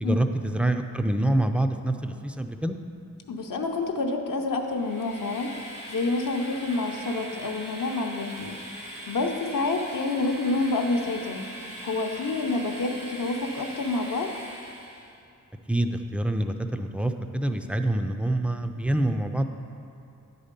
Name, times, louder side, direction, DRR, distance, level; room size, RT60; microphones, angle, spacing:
voice 1, 0.0-2.8 15.7-19.4, right 1 dB, 5° right, 6 dB, 0.4 m, -26 dB
voice 2, 3.3-5.5 5.9-11.4 11.8-14.3, left 3 dB, 70° left, 2 dB, 0.7 m, -28 dB
Train, 4.6-15.1, right 1 dB, 90° right, 1.2 m, -41 dB
9.6 x 4.2 x 5.2 m, 2.6 s
wide cardioid pair, 60°, 33 cm